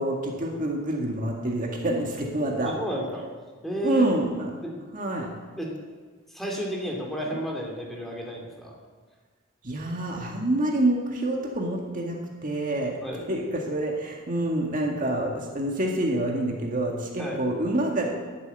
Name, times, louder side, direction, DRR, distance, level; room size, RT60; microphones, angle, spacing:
voice 1, 0.0-2.7 3.8-4.5 4.9-5.3 9.6-13.0 13.3-18.1, right 1 dB, 40° right, 0 dB, 1.8 m, -27 dB
voice 2, 2.6-3.2 3.6-4.1 4.6-4.7 5.6-5.7 6.3-8.7 13.0-13.2 17.2-17.4, right 1 dB, ahead, -2 dB, 2.8 m, -32 dB
11.5 x 11.0 x 9.0 m, 1.4 s
head